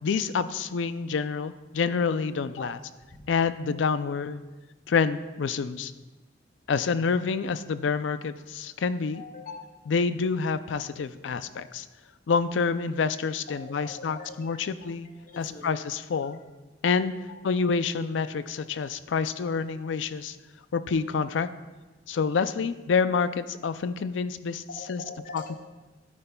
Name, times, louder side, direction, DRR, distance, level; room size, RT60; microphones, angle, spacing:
voice 1, 0.0-2.8 3.3-4.4 4.9-5.9 6.7-9.2 9.9-11.9 12.3-15.1 15.4-16.4 16.8-17.1 17.4-20.4 20.7-21.5 22.1-24.6 24.9-25.0, left 5 dB, 80° left, 13 dB, 0.4 m, -27 dB
voice 2, 9.1-9.8 13.5-14.9 15.2-15.8 16.1-16.4 17.3-17.5 24.7-25.6, left 3 dB, 50° left, 2 dB, 1.0 m, -43 dB
12.5 x 9.7 x 2.3 m, 1.2 s
head